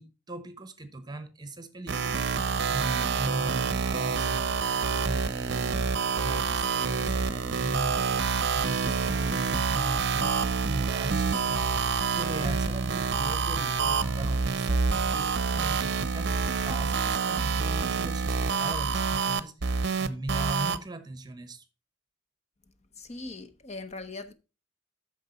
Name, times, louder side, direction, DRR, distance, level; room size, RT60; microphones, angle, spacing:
voice 1, 0.0-5.9 6.2-16.4 16.6-19.5 20.0-21.6, right 2 dB, 20° right, 1.0 m, -38 dB
sound 1, 1.9-20.8, right 5 dB, 60° right, 0.6 m, -27 dB
sound 2, 4.4-16.8, right 1 dB, 55° left, 1.2 m, -50 dB
sound 3, 8.1-16.9, right 1 dB, 75° left, 5.1 m, -48 dB
voice 2, 23.0-24.3, left 3 dB, 35° left, 0.7 m, -40 dB
9.2 x 6.5 x 4.1 m
head